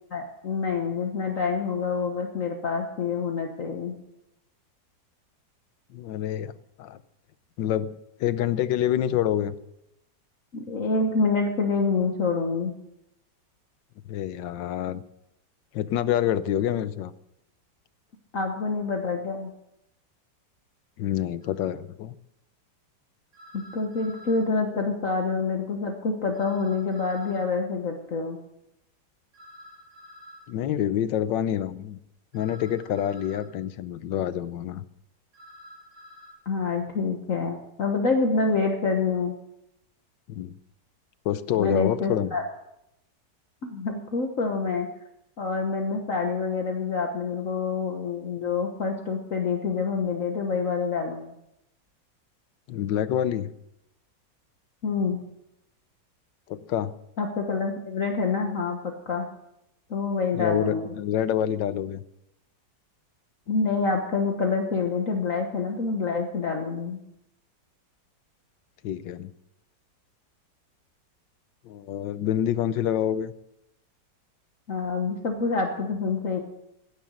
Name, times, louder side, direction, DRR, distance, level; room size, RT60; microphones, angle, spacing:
voice 1, 0.1-3.9 10.5-12.7 18.3-19.5 23.5-28.4 36.4-39.3 41.6-42.4 43.6-44.9 45.4-51.3 54.8-55.2 57.2-59.3 59.9-60.9 63.5-67.0 74.7-76.4, left 4 dB, 50° left, 2 dB, 1.6 m, -27 dB
voice 2, 5.9-6.5 6.8-7.0 7.6-7.9 8.2-9.5 14.1-15.0 15.7-17.1 21.0-22.2 30.5-32.0 32.3-34.8 40.3-40.5 41.2-42.3 52.7-53.5 56.5-57.0 60.3-62.0 68.8-69.3 71.6-73.3, left 10 dB, 85° left, 14 dB, 1.5 m, -27 dB
sound 1, 21.4-21.5 23.3-24.5 26.3-27.5 29.3-30.5 32.3-33.5 35.3-36.3, left 1 dB, 60° right, 8.6 m, -48 dB
16.0 x 10.5 x 6.4 m, 0.84 s
omnidirectional pair, 2.0 m